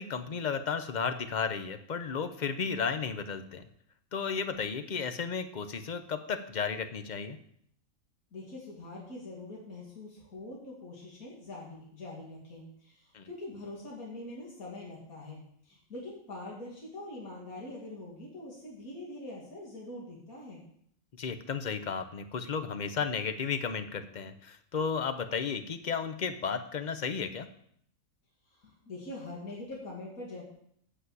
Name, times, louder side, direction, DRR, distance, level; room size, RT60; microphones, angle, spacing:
voice 1, 0.0-3.6 4.1-7.4 13.1-13.3 21.2-27.5, left 6 dB, 40° left, 9 dB, 0.7 m, -33 dB
voice 2, 8.3-20.6 28.6-30.4, left 2 dB, 75° left, -4 dB, 2.8 m, -44 dB
8.3 x 6.1 x 7.9 m, 0.68 s
omnidirectional pair, 1.5 m